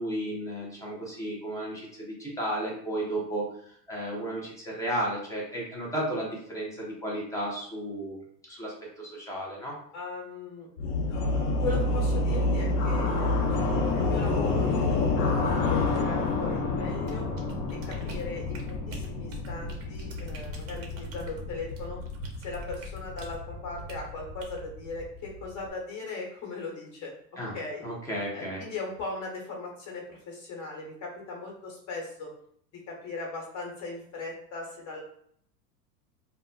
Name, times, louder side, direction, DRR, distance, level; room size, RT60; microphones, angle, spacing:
voice 1, 0.0-8.2 8.5-9.8 27.4-27.6 27.8-28.6, right 1 dB, 10° left, -4 dB, 0.3 m, -33 dB
voice 2, 9.9-10.7 11.6-17.3 17.7-22.0 22.4-27.8 28.3-32.3 32.9-35.0, left 3 dB, 35° left, -1 dB, 1.2 m, -38 dB
sound 1, 10.8-25.7, left 2 dB, 65° left, 0.7 m, -29 dB
sound 2, 17.0-23.4 23.9-24.1 24.4-24.6, right 3 dB, 30° right, 0.6 m, -45 dB
2.1 x 2.0 x 3.7 m, 0.65 s
hypercardioid pair, 105°, 49 cm